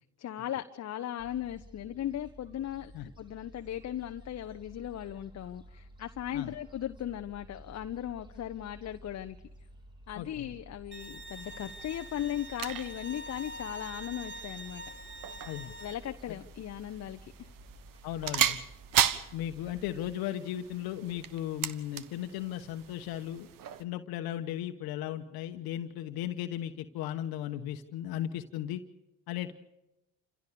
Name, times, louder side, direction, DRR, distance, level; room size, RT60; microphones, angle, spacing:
voice 1, 0.2-2.9 3.2-9.4 10.1-14.8 15.8-17.5, left 11 dB, 40° left, 7 dB, 0.9 m, -37 dB
Gull seagull, 1.2-20.1, right 1 dB, 10° right, 3.7 m, -53 dB
voice 2, 10.2-10.5 15.5-15.7 18.0-18.6 19.3-23.5 23.8-28.8 29.3-29.5, left 11 dB, 65° left, 7 dB, 1.3 m, -36 dB
Bowed string instrument, 10.9-15.9, right 1 dB, 30° right, 2.3 m, -45 dB
sound 1, 11.3-23.8, right 10 dB, 55° right, 1.4 m, -37 dB
28.0 x 16.0 x 6.9 m, 0.95 s
hypercardioid pair, 75°, 40 cm